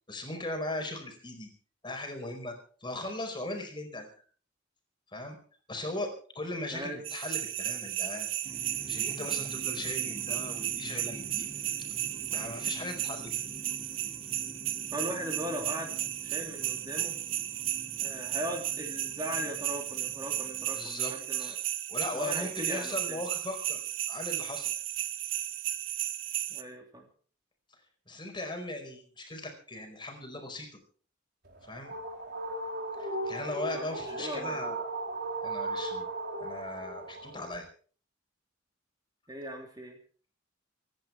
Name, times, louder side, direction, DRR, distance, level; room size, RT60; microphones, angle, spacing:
voice 1, 0.1-1.5 1.8-2.5 2.8-4.1 5.1-5.4 5.7-8.3 8.9-11.5 12.3-13.4 20.7-21.1 21.4-21.6 21.9-23.8 24.1-24.7 28.1-30.7 31.6-31.9 33.0-34.9 35.4-36.0 36.4-37.7, left 2 dB, 25° left, 4 dB, 4.8 m, -38 dB
voice 2, 6.7-7.1 14.9-15.9 16.2-17.1 18.0-21.5 22.1-23.2 26.5-27.1 33.7-34.6 39.3-40.0, equal, 20° right, 2 dB, 3.3 m, -39 dB
sound 1, 7.0-26.6, right 13 dB, 80° right, 1.2 m, -34 dB
sound 2, 8.4-20.7, left 1 dB, 45° left, 4.0 m, -48 dB
sound 3, 31.5-37.6, right 2 dB, 55° right, 4.4 m, -36 dB
26.5 x 11.0 x 4.5 m, 0.44 s
head